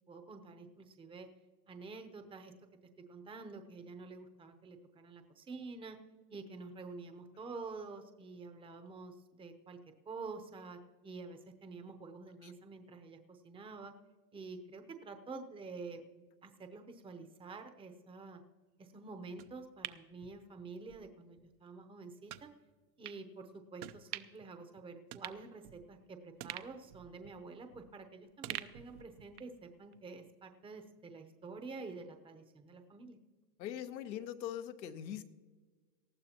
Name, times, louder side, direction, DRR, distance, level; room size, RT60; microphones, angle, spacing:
voice 1, 0.1-1.3 1.7-2.5 3.1-6.0 6.3-9.8 10.1-13.9 14.3-16.0 16.4-18.4 18.8-22.5 23.0-33.2, right 4 dB, 10° right, 6 dB, 0.8 m, -48 dB
sound 1, 19.4-21.0 21.4-21.5 22.3-22.5 23.0-23.2 23.8-24.5 24.8-24.9 25.1-26.0 26.4-28.0 28.4-29.6 29.9-30.0, right 15 dB, 60° right, 0.8 m, -47 dB
voice 2, 33.6-35.2, left 10 dB, 85° left, 8 dB, 1.1 m, -41 dB
19.0 x 14.0 x 2.9 m, 1.4 s
supercardioid pair, 130°, 50 cm